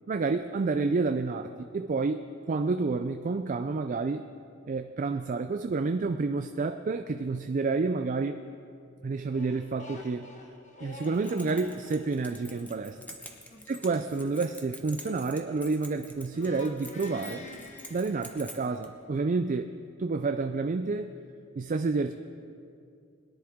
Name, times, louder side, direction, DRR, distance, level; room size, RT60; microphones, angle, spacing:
voice 1, 0.1-4.2 4.7-8.4 9.0-10.3 10.8-13.0 13.7-17.5 17.9-19.7 20.0-21.1 21.6-22.1, right 4 dB, 40° right, 8 dB, 0.4 m, -29 dB
sound 1, 9.3-16.0 16.3-18.7, left 1 dB, 35° left, 1.2 m, -47 dB
Keys jangling, 10.9-18.9, left 1 dB, 5° left, 1.0 m, -48 dB
21.5 x 10.5 x 3.6 m, 2.5 s
head